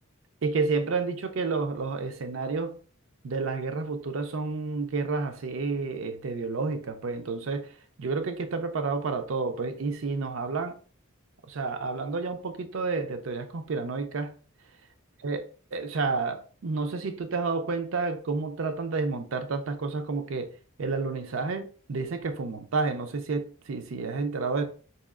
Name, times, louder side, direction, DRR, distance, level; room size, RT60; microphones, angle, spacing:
voice 1, 0.4-2.8 3.2-7.7 8.0-10.7 11.5-14.3 15.2-15.4 15.7-20.5 20.8-24.6, right 4 dB, 65° right, 0.5 m, -30 dB
4.1 x 2.8 x 2.4 m
head